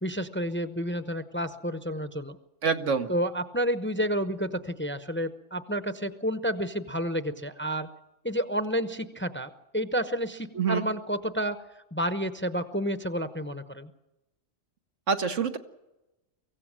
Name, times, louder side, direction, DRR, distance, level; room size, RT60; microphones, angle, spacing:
voice 1, 0.0-2.4 3.1-7.9 8.2-11.6 11.9-13.9, equal, 10° left, 10 dB, 0.7 m, -30 dB
voice 2, 2.6-3.1 10.6-10.8 15.1-15.6, right 5 dB, 85° right, 6 dB, 1.6 m, -26 dB
24.0 x 16.0 x 7.6 m, 0.97 s
omnidirectional pair, 1.2 m